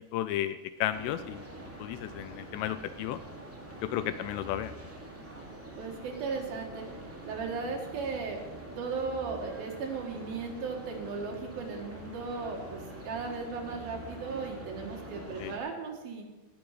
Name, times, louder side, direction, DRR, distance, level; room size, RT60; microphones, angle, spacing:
voice 1, 0.1-3.2 3.8-4.7 15.4-15.5, left 12 dB, 85° left, 12 dB, 2.5 m, -33 dB
sound 1, 0.9-15.6, right 1 dB, 10° right, 0.8 m, -45 dB
voice 2, 5.8-6.9 7.2-8.4 8.8-16.2, right 4 dB, 60° right, 1 dB, 3.2 m, -36 dB
18.5 x 7.0 x 6.5 m, 1.2 s
omnidirectional pair, 5.1 m